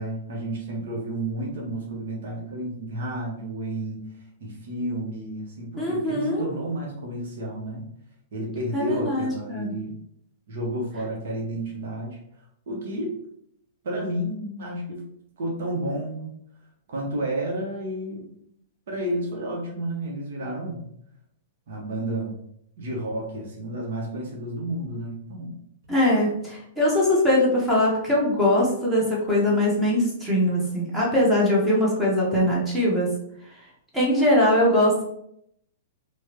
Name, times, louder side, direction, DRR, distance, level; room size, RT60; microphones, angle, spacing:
voice 1, 0.0-4.0 4.4-7.8 8.3-9.9 10.5-12.2 12.7-13.1 13.8-15.1 15.4-16.3 16.9-18.3 18.9-20.9 21.7-22.4 22.8-25.6, right 1 dB, 55° right, -1 dB, 1.3 m, -31 dB
voice 2, 5.7-6.5 8.7-9.7 25.9-33.1 33.9-35.0, left 1 dB, 10° right, -5 dB, 1.3 m, -21 dB
4.6 x 2.6 x 3.0 m, 0.72 s
figure-of-eight pair, 105°, 0 cm